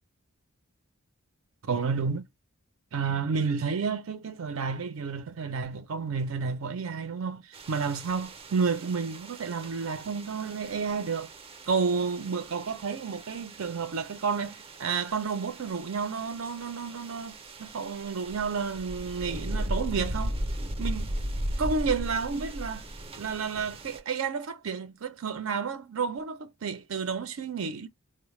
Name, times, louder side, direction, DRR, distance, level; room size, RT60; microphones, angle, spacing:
voice 1, 1.6-2.3 2.9-11.3 11.7-20.4 20.8-21.1 21.6-22.9 23.2-27.9, right 5 dB, 80° right, 0.5 m, -31 dB
sound 1, 7.5-24.0, right 1 dB, 25° right, 0.5 m, -37 dB
3.8 x 2.1 x 3.1 m
head